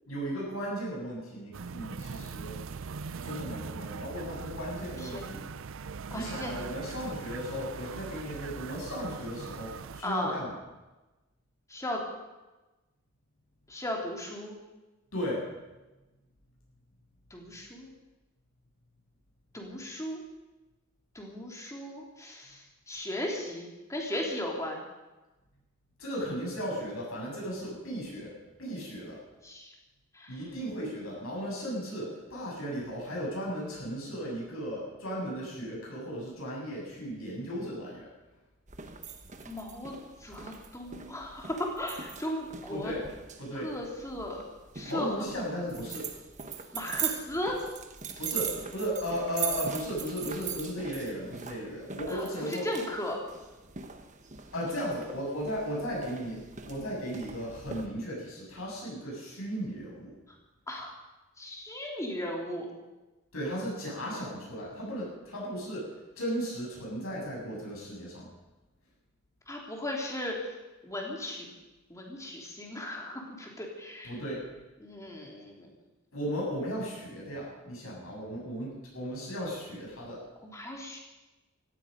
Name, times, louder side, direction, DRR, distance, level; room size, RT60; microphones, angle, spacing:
voice 1, 0.1-2.6 3.2-5.4 6.1-10.5 15.1-15.4 26.0-28.3 28.6-29.2 30.3-38.0 42.7-43.1 43.4-43.7 44.9-46.1 48.2-52.6 54.5-60.1 63.3-65.9 66.2-68.3 74.0-74.4 76.1-80.2, equal, 80° left, -3 dB, 7.5 m, -36 dB
sound 1, 1.5-10.0, right 5 dB, 65° right, 0.5 m, -41 dB
voice 2, 5.0-5.4 6.1-6.8 10.0-10.3 11.7-12.0 13.7-14.5 17.3-17.9 19.5-20.2 21.1-24.8 29.4-29.7 30.1-30.4 39.4-39.9 40.2-42.9 43.5-44.4 44.7-45.1 46.7-47.5 52.1-53.2 60.7-60.9 61.4-62.7 69.5-70.6 70.8-71.5 71.9-74.1 74.8-75.7 80.4-81.0, left 1 dB, 15° left, -1 dB, 3.1 m, -36 dB
sound 2, 38.7-57.9, right 7 dB, 35° right, 1.3 m, -41 dB
17.0 x 15.0 x 5.3 m, 1.1 s
head